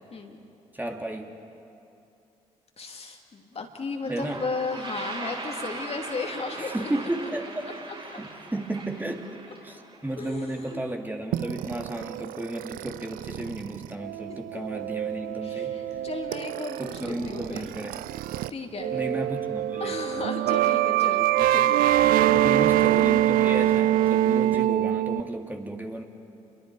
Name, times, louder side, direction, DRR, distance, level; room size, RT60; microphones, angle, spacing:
voice 1, 0.7-1.3 4.1-4.4 6.6-7.7 8.2-9.3 9.6-15.7 16.8-18.0 18.9-20.0 22.3-26.0, right 1 dB, 10° right, 2 dB, 2.5 m, -33 dB
voice 2, 2.8-6.9 8.1-8.2 10.2-10.8 14.3-14.7 15.4-17.7 18.5-19.0 19.8-21.9, left 4 dB, 40° left, 3 dB, 2.7 m, -35 dB
Toilet flush, 3.6-3.7 3.9-10.7, right 3 dB, 35° right, 6.7 m, -40 dB
sound 1, 11.3-18.5 18.8-25.2, right 13 dB, 65° right, 0.5 m, -25 dB
29.5 x 22.5 x 4.8 m, 2.7 s
figure-of-eight pair, 40°, 16 cm